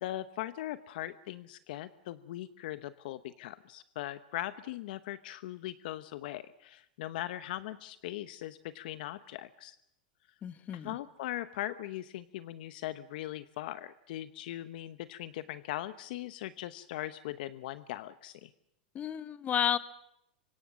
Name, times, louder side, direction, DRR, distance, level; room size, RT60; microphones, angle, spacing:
voice 1, 0.0-9.8 10.8-18.5, left 14 dB, 65° left, 0.9 m, -40 dB
voice 2, 10.4-11.0 18.9-19.8, left 9 dB, 30° left, 1.5 m, -31 dB
25.0 x 24.5 x 6.3 m
hypercardioid pair, 110°, 5 cm